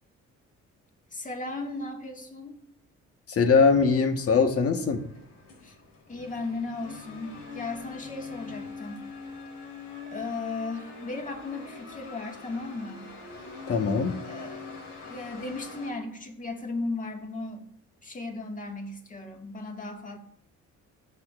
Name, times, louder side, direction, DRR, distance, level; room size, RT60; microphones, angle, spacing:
voice 1, 1.1-2.5 5.6-5.7 6.1-9.0 10.1-13.1 14.2-14.7 15.0-17.6 18.0-20.2, left 3 dB, 25° left, 2 dB, 1.9 m, -36 dB
voice 2, 3.3-5.0 13.7-14.2, left 5 dB, 50° left, 5 dB, 1.4 m, -22 dB
sound 1, 3.4-15.9, left 4 dB, 80° left, 3.5 m, -44 dB
19.5 x 6.9 x 2.5 m, 0.71 s
cardioid pair, 90°, 30 cm